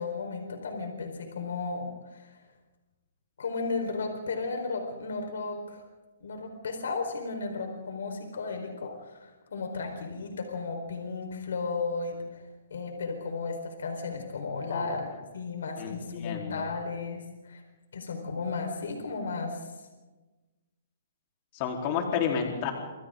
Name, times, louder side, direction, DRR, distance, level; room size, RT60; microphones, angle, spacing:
voice 1, 0.0-2.4 3.4-5.8 6.2-12.4 12.7-17.6 17.9-19.7, left 4 dB, 85° left, 4 dB, 4.6 m, -34 dB
voice 2, 15.8-16.6 21.5-22.7, left 7 dB, 35° left, 1 dB, 4.0 m, -31 dB
28.5 x 27.0 x 3.9 m, 1.2 s
hypercardioid pair, 160°, 0 cm